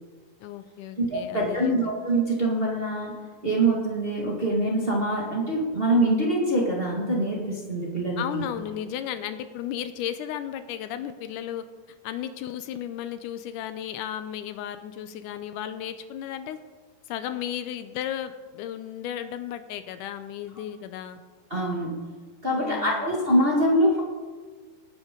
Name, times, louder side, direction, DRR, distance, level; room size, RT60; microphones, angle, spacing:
voice 1, 0.4-1.9 8.2-11.6 12.0-16.6 17.1-21.2 22.5-23.1, left 10 dB, 85° left, 10 dB, 1.9 m, -34 dB
voice 2, 1.0-3.1 3.4-8.4 21.5-22.0 22.4-24.0, right 1 dB, 30° right, -3 dB, 1.0 m, -24 dB
19.0 x 9.3 x 3.8 m, 1.4 s
omnidirectional pair, 4.2 m